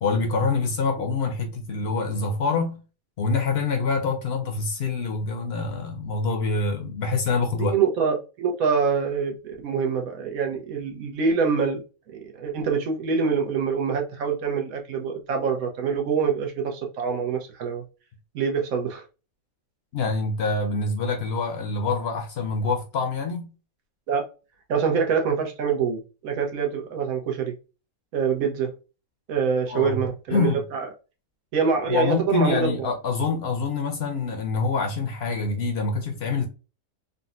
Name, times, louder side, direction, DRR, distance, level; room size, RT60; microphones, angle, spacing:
voice 1, 0.0-2.8 3.2-7.8 19.9-23.5 29.7-30.0 30.3-30.6 31.9-36.5, left 4 dB, 60° left, 0.7 m, -26 dB
voice 2, 7.6-11.8 12.1-17.8 18.3-19.0 24.1-24.2 24.7-27.5 28.1-28.7 29.3-30.9 31.5-32.9, right 6 dB, 85° right, 1.2 m, -25 dB
3.8 x 2.1 x 2.4 m
omnidirectional pair, 1.5 m